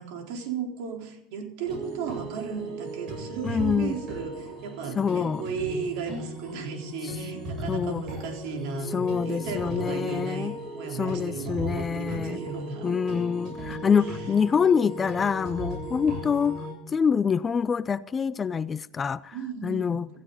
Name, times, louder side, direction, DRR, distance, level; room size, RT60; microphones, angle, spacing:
voice 1, 0.0-12.9 13.9-14.3 16.0-16.2 19.3-20.1, right 6 dB, 65° right, 4.0 m, -35 dB
sound 1, 1.6-16.7, right 1 dB, 45° right, 7.3 m, -36 dB
voice 2, 3.4-4.0 5.0-5.4 7.7-8.0 8.9-10.5 10.9-12.4 12.8-16.6 16.9-19.3 19.6-20.1, left 6 dB, 25° left, 0.5 m, -26 dB
16.5 x 15.5 x 4.1 m
supercardioid pair, 120°, 0 cm